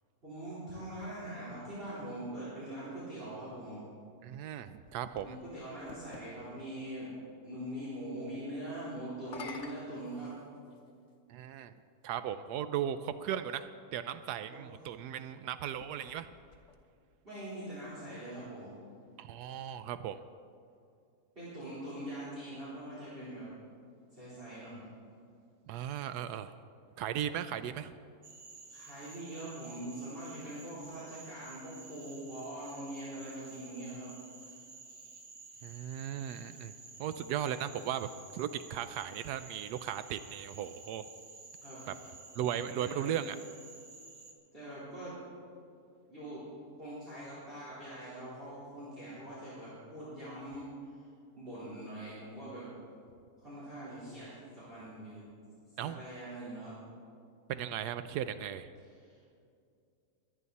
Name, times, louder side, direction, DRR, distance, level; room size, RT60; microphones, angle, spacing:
voice 1, 0.2-3.9 5.2-7.1 7.4-10.3 14.5-14.6 17.2-18.7 21.4-23.5 24.1-24.9 28.7-34.1 41.6-41.8 42.8-43.1 44.5-45.2 46.1-46.4 46.7-50.7 51.4-52.7 53.4-54.3 54.5-55.2 55.8-56.8 59.0-59.2, right 1 dB, 35° right, -10 dB, 4.2 m, -43 dB
voice 2, 4.2-5.4 11.3-11.7 12.0-16.3 19.2-20.2 25.7-26.5 27.0-27.9 35.6-36.7 37.0-41.1 41.9-42.0 42.4-43.4 55.8-56.0 57.5-58.7, right 10 dB, 85° right, 12 dB, 1.1 m, -37 dB
sound 1, 4.5-6.3 9.1-10.9 11.8-11.9 15.6-17.2, left 5 dB, 55° left, 1.3 m, -50 dB
Cricket / Frog, 28.2-44.3, right 3 dB, 60° right, 1.7 m, -52 dB
22.0 x 10.0 x 4.1 m, 2.4 s
omnidirectional pair, 1.7 m